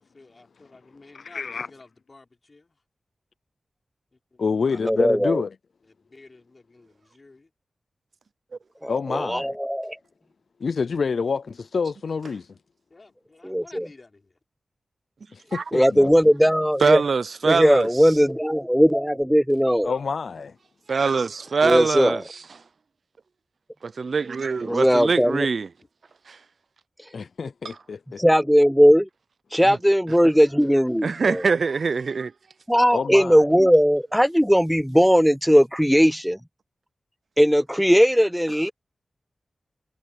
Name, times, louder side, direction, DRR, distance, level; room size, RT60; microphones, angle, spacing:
voice 1, 0.1-2.8 4.1-4.4 5.8-7.5 12.9-14.4, left 3 dB, 45° left, 4.8 m, -52 dB
voice 2, 1.1-1.7 4.4-5.5 8.9-9.6 10.6-12.5 15.3-16.1 19.8-20.5 27.1-28.2 32.9-33.4, left 5 dB, 80° left, 0.4 m, -27 dB
voice 3, 4.8-5.4 8.8-10.0 13.5-13.9 15.7-17.0 17.5-19.9 21.6-22.2 24.6-25.5 27.0-27.1 28.2-29.1 29.5-31.4 32.7-36.4 37.4-38.7, equal, ahead, 0.3 m, -18 dB
voice 4, 16.8-17.9 20.9-22.2 23.8-25.7 26.3-26.4 31.0-32.3, right 4 dB, 75° right, 0.5 m, -23 dB
cardioid pair, 50°, 0 cm